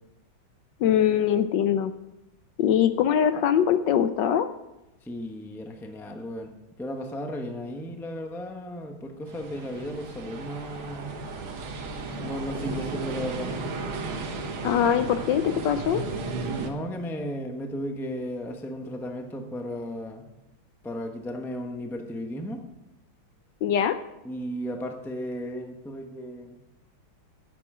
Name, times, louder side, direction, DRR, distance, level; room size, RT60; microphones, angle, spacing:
voice 1, 0.8-1.9 2.6-4.5 14.6-16.0 23.6-24.0, left 9 dB, 70° left, 11 dB, 1.2 m, -22 dB
voice 2, 5.0-6.5 6.8-11.2 12.2-13.5 16.6-20.3 20.8-22.6 24.2-26.6, equal, ahead, 4 dB, 0.6 m, -35 dB
sound 1, 9.3-16.7, right 3 dB, 80° right, 2.1 m, -34 dB
12.5 x 9.9 x 4.9 m, 0.94 s
omnidirectional pair, 2.2 m